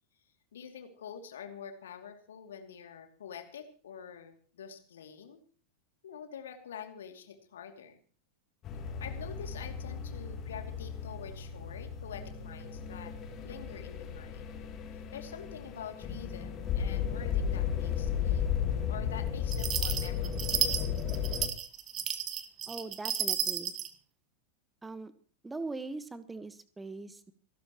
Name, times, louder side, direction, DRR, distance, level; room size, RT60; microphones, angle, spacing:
voice 1, 0.5-5.4 6.0-8.0 9.0-13.1 13.4-14.5 15.1-18.5 18.9-20.6, left 8 dB, 65° left, 6 dB, 2.7 m, -46 dB
sound 1, 8.6-21.5, left 8 dB, 30° left, 3.0 m, -34 dB
sound 2, 19.5-23.9, right 9 dB, 30° right, 1.4 m, -32 dB
voice 2, 22.7-23.7 24.8-25.1 25.4-27.3, right 3 dB, 10° right, 13 dB, 1.4 m, -41 dB
27.0 x 12.5 x 3.1 m, 0.43 s
figure-of-eight pair, 90°, 0 cm